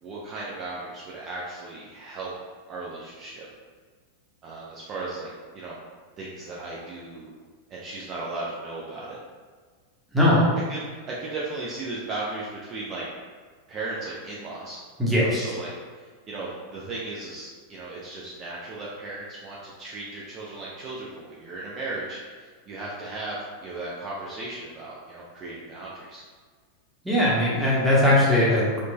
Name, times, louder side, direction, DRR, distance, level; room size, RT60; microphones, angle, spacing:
voice 1, 0.0-2.3 2.7-3.5 4.4-5.8 6.2-7.3 7.7-9.2 10.2-10.4 10.7-10.8 11.1-13.0 13.7-14.8 15.2-15.7 16.0-26.2, right 2 dB, 30° right, -6 dB, 0.4 m, -36 dB
voice 2, 15.0-15.5 27.0-28.8, left 1 dB, 5° right, -7 dB, 0.9 m, -20 dB
3.7 x 2.4 x 2.3 m, 1.5 s
figure-of-eight pair, 90°, 0 cm